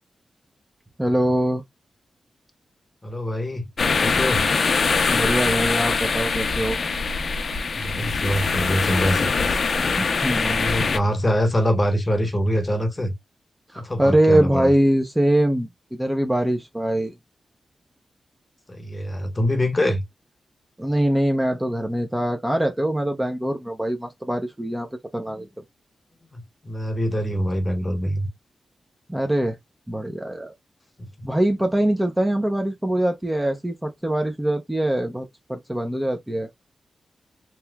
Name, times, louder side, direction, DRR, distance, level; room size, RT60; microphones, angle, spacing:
voice 1, 1.0-1.6 5.1-6.8 10.0-10.7 13.7-17.2 20.8-25.5 29.1-29.6 29.9-30.5 31.2-36.5, right 1 dB, 10° right, 0.6 m, -23 dB
voice 2, 3.0-3.7 4.0-4.5 7.7-9.6 10.5-13.1 13.8-14.7 18.7-20.0 26.3-28.3, equal, 20° left, 0.9 m, -24 dB
sound 1, 3.8-11.0, left 4 dB, 55° left, 0.5 m, -23 dB
3.1 x 2.9 x 2.2 m
wide cardioid pair, 105°, 0 cm